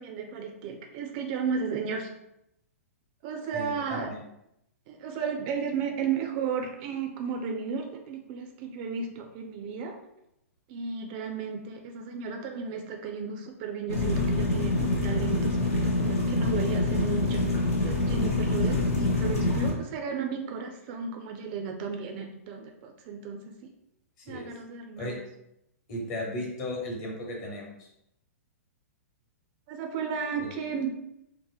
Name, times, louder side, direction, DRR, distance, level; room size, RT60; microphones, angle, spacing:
voice 1, 0.0-2.1 3.2-4.1 4.9-10.0 10.7-15.6 15.8-17.4 17.8-23.7 24.3-25.2 29.7-30.9, right 5 dB, 40° right, 3 dB, 0.3 m, -34 dB
voice 2, 3.5-4.2 18.7-18.9 24.2-24.5 25.0-25.1 25.9-27.9 30.4-30.5, left 1 dB, 40° left, -2 dB, 1.0 m, -36 dB
sound 1, 13.9-19.7, left 2 dB, 70° left, 0.8 m, -26 dB
2.8 x 2.0 x 2.3 m, 0.81 s
hypercardioid pair, 115°, 8 cm